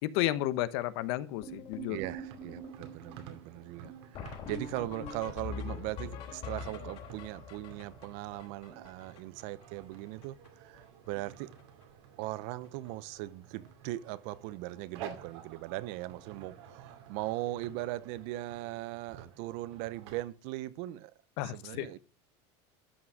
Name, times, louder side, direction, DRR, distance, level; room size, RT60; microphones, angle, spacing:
voice 1, 0.0-2.0 21.4-21.9, left 14 dB, 65° left, 1.0 m, -32 dB
sound 1, 1.4-9.6 9.9-10.0 10.2-10.5 10.7-11.3 11.6-11.8 12.6-12.7 13.2-13.3 13.5-13.7 16.0-16.1 18.4-18.5, left 3 dB, 45° left, 3.4 m, -44 dB
voice 2, 1.9-11.5 12.2-21.1 21.4-22.0, right 17 dB, 60° right, 0.7 m, -39 dB
sound 2, 1.9-20.2, right 8 dB, 75° right, 2.6 m, -52 dB
12.5 x 6.0 x 4.8 m
supercardioid pair, 145°, 14 cm